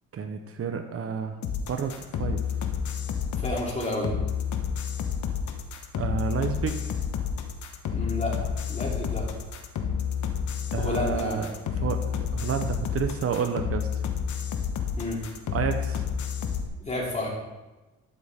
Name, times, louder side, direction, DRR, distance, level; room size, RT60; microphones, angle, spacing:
voice 1, 0.1-1.4 1.7-1.9 2.2-2.4 6.0-6.8 10.7-11.5 11.8-13.9 15.5-16.0, right 7 dB, 50° right, 6 dB, 0.9 m, -30 dB
sound 1, 1.4-16.7, left 7 dB, 70° left, 1.1 m, -30 dB
voice 2, 3.4-4.1 7.9-8.3 8.7-9.2 10.8-11.4 15.0-15.2 16.8-17.3, left 1 dB, 25° left, -3 dB, 3.2 m, -30 dB
12.5 x 6.6 x 3.6 m, 1.1 s
cardioid pair, 90°, 30 cm